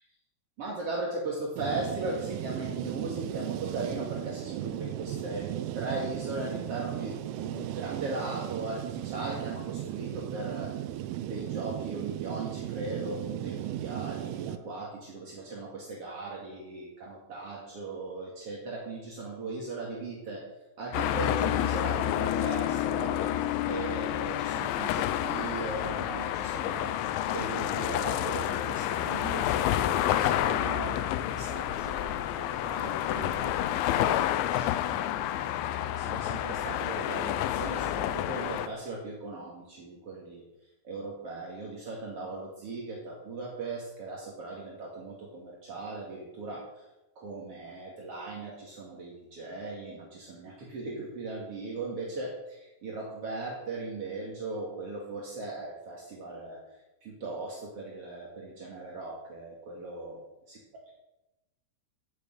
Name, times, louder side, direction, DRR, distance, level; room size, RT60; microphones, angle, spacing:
voice 1, 0.6-10.8 11.2-20.5 20.8-23.3 23.7-40.4 40.8-46.7 47.2-56.6 57.0-60.2 60.5-60.6, right 3 dB, 45° right, -3 dB, 2.0 m, -38 dB
sound 1, 1.6-14.6, right 13 dB, 80° right, 3.4 m, -36 dB
sound 2, 20.9-38.7, left 12 dB, 80° left, 2.8 m, -29 dB
15.0 x 7.0 x 9.0 m, 0.96 s
omnidirectional pair, 5.8 m